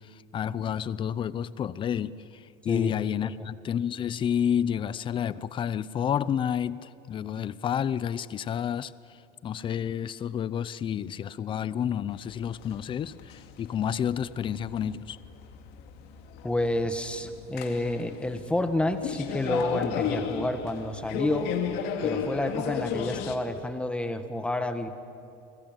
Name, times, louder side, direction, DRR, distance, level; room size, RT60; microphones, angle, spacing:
voice 1, 0.3-2.1 2.6-8.9 9.4-15.2, left 9 dB, 25° left, 17 dB, 0.7 m, -30 dB
sound 1, 12.1-23.3, left 7 dB, 65° left, 2.6 m, -34 dB
voice 2, 16.4-21.5 22.0-24.9, left 1 dB, 5° left, 8 dB, 1.5 m, -29 dB
29.5 x 21.5 x 9.1 m, 2.7 s
cardioid pair, 155°, 18 cm